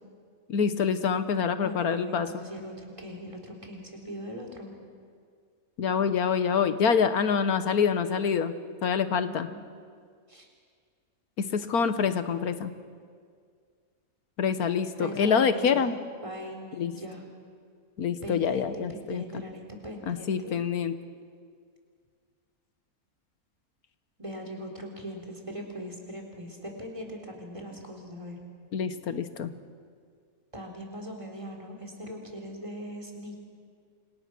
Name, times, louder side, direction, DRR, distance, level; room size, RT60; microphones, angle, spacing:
voice 1, 0.5-2.3 5.8-8.5 8.8-9.5 11.4-12.7 14.4-16.0 16.7-16.9 18.0-19.4 20.1-20.9 28.7-29.5, left 6 dB, 90° left, 11 dB, 1.7 m, -26 dB
voice 2, 1.6-4.7 9.1-9.8 10.3-10.5 15.0-15.8 16.2-17.2 18.2-20.6 24.2-28.4 30.5-33.4, equal, 20° right, 1 dB, 3.9 m, -40 dB
29.5 x 26.0 x 6.2 m, 2.1 s
omnidirectional pair, 1.5 m